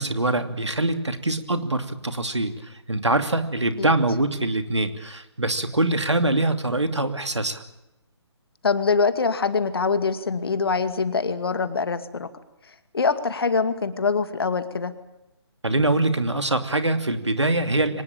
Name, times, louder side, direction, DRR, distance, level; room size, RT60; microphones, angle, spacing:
voice 1, 0.0-2.5 2.9-7.6 15.6-18.0, right 2 dB, 80° right, 9 dB, 2.8 m, -23 dB
voice 2, 8.6-12.3 12.9-14.9, left 4 dB, 55° left, 11 dB, 2.3 m, -24 dB
24.5 x 19.5 x 8.9 m, 0.90 s
figure-of-eight pair, 140°, 15 cm